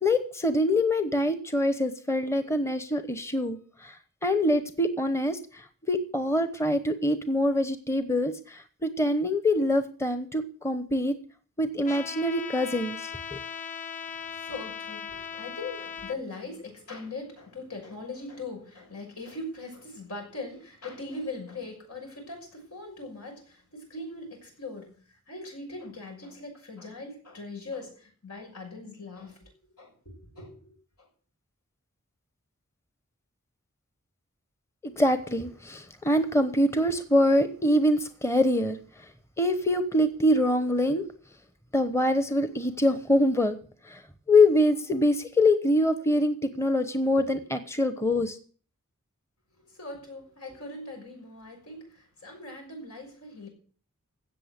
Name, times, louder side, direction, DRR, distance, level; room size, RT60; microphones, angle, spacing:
voice 1, 0.0-3.9 4.2-11.2 11.6-13.4 34.8-38.8 39.4-41.0 41.7-43.6 43.9-44.0 44.3-48.4, left 1 dB, 10° left, 1.0 m, -24 dB
Trumpet, 11.9-16.2, left 7 dB, 35° left, 0.7 m, -38 dB
voice 2, 14.2-29.5 29.8-30.7 31.0-31.1 49.6-53.5, left 2 dB, 85° left, 6.3 m, -41 dB
16.5 x 6.6 x 8.2 m
head